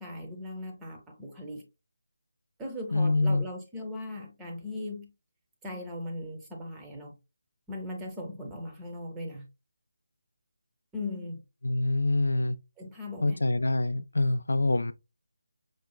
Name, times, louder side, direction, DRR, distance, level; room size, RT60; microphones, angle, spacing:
voice 1, 0.0-1.6 2.6-5.1 5.6-7.1 7.7-9.5 10.9-11.4 12.8-13.4, left 1 dB, 10° right, 0.7 m, -38 dB
voice 2, 2.9-3.5 11.6-12.6 13.2-14.9, left 2 dB, 80° left, 0.3 m, -25 dB
5.1 x 2.3 x 2.2 m
figure-of-eight pair, 160°, 0 cm